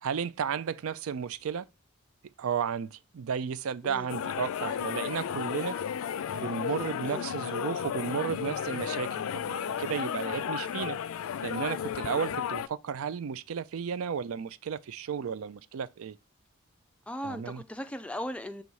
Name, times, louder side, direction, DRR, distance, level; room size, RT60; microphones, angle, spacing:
voice 1, 0.0-1.7 2.4-5.8 6.3-11.0 11.4-16.2 17.2-17.6, right 7 dB, 80° right, 0.4 m, -33 dB
sound 1, 4.1-12.7, left 8 dB, 75° left, 0.3 m, -33 dB
voice 2, 17.1-18.6, equal, 5° left, 0.4 m, -37 dB
6.8 x 3.0 x 4.7 m
head